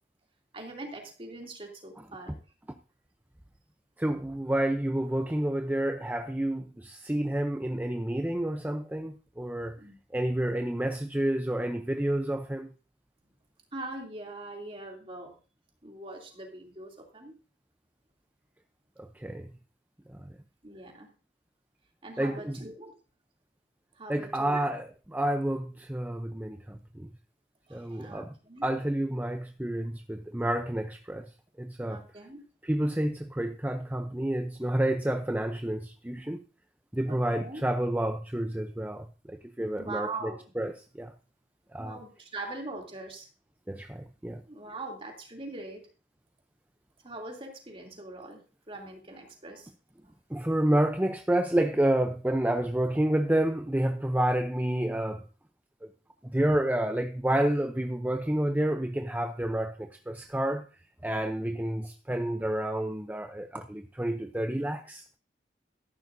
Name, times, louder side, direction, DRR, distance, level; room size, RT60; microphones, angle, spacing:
voice 1, 0.5-2.4 9.8-10.0 13.7-15.4 15.8-17.4 20.6-21.1 22.0-22.9 24.0-24.6 27.7-28.7 31.9-32.4 37.0-37.6 39.8-40.4 41.8-43.3 44.5-45.8 47.0-49.7 50.3-50.4, right 2 dB, 30° right, 2.8 m, -42 dB
voice 2, 4.0-9.8 10.1-12.7 19.0-19.5 20.1-20.3 22.2-22.6 24.1-27.1 27.7-28.3 28.6-31.3 31.6-32.0 32.6-36.4 36.9-40.1 40.6-41.1 41.7-42.0 43.7-44.4 50.3-55.2 55.8-55.9 56.2-60.7 61.0-65.0, right 1 dB, 10° right, 0.6 m, -29 dB
13.5 x 11.5 x 2.6 m
head